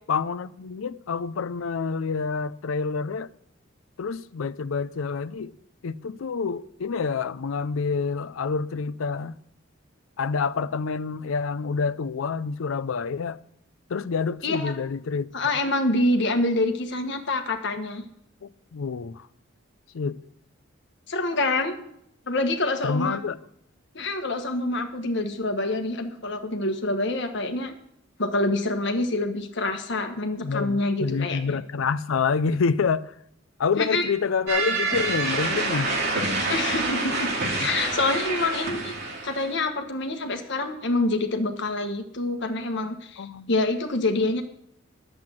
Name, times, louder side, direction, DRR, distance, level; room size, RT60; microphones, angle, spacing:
voice 1, 0.1-3.3 4.0-5.5 5.8-9.4 10.2-13.4 13.9-15.3 18.4-19.3 19.9-20.2 22.8-23.4 30.4-33.1 33.6-35.9 37.6-37.9 43.2-43.5, left 5 dB, 80° left, 0.5 m, -27 dB
voice 2, 14.4-14.7 15.3-18.0 21.1-21.8 22.3-23.2 23.9-27.7 28.2-31.4 33.8-34.1 36.4-37.3 37.5-38.9 39.2-44.4, left 2 dB, 60° left, 1.4 m, -26 dB
sound 1, 34.5-39.5, right 3 dB, 55° right, 2.6 m, -27 dB
10.5 x 7.7 x 7.6 m
head